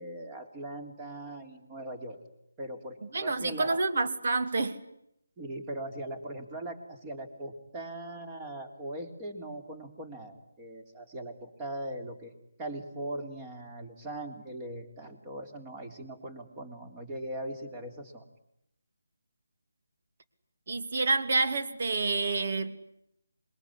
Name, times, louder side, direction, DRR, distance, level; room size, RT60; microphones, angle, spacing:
voice 1, 0.0-2.2 2.6-3.8 5.4-12.3 12.6-18.2, right 1 dB, 15° right, 5 dB, 3.5 m, -40 dB
voice 2, 3.1-4.8 20.7-22.8, right 3 dB, 50° right, 9 dB, 2.7 m, -28 dB
26.5 x 22.0 x 10.0 m, 0.80 s
figure-of-eight pair, 155°, 0 cm